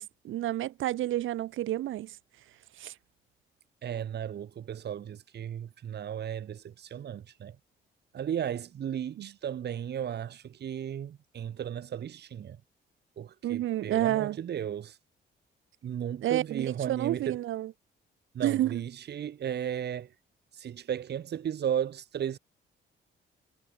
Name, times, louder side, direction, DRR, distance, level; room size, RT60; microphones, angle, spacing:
voice 1, 0.0-2.2 2.8-2.9 9.2-9.3 13.4-14.4 16.2-17.7 18.4-18.8, right 14 dB, 80° right, 2.7 m, -30 dB
voice 2, 3.8-7.6 8.1-12.6 13.2-15.0 15.8-17.4 18.3-20.1 20.5-22.4, right 9 dB, 55° right, 1.8 m, -35 dB
cardioid pair, 90°, 20 cm